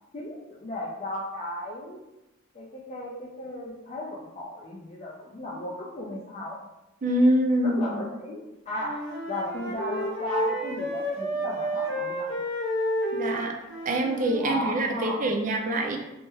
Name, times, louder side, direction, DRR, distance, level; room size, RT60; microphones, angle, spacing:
voice 1, 0.1-2.0 2.5-6.6 7.6-9.0 9.3-12.4 14.4-15.3, equal, 30° left, -6 dB, 0.4 m, -35 dB
voice 2, 7.0-8.0 13.1-13.5 13.9-16.0, right 1 dB, 40° right, 2 dB, 0.4 m, -24 dB
Wind instrument woodwind instrument, 8.8-14.5, equal, 65° left, 0.8 m, -31 dB
3.0 x 2.1 x 3.4 m, 0.96 s
head